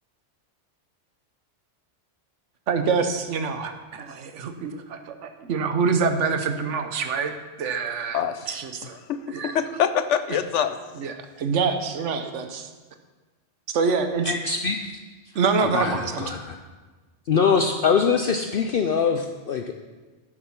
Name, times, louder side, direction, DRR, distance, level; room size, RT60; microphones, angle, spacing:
voice 1, 2.7-7.3 7.6-9.0 9.3-9.5 11.0-12.7 13.7-14.3 15.3-16.3, right 5 dB, 75° right, 8 dB, 1.2 m, -26 dB
voice 2, 8.1-8.5 9.1-10.8, left 8 dB, 80° left, 11 dB, 1.0 m, -25 dB
voice 3, 14.2-14.8 15.6-16.5 17.3-19.7, left 6 dB, 55° left, 5 dB, 0.7 m, -23 dB
11.5 x 6.7 x 5.8 m, 1.3 s
omnidirectional pair, 1.2 m